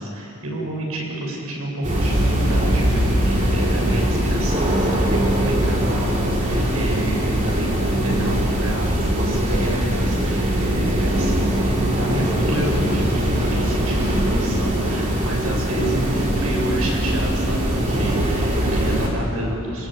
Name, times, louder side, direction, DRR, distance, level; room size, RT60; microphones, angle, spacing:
voice 1, 0.0-19.9, right 1 dB, 75° right, -2 dB, 7.6 m, -29 dB
sound 1, 1.8-19.1, right 1 dB, 35° right, 6.3 m, -21 dB
29.0 x 19.0 x 9.0 m, 2.7 s
head